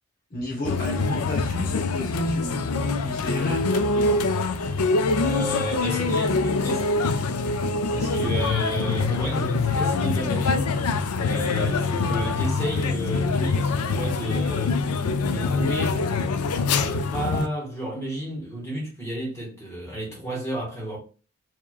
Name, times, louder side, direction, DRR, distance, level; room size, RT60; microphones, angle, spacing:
voice 1, 0.3-4.2, left 1 dB, 40° left, 0.9 m, -33 dB
sound 1, 0.6-17.5, left 3 dB, 85° left, 0.5 m, -24 dB
voice 2, 5.1-7.2 7.6-7.7 7.9-10.8 11.2-14.8 15.2-16.1 16.6-21.0, right 1 dB, 15° left, 1.7 m, -32 dB
4.7 x 2.9 x 2.3 m
head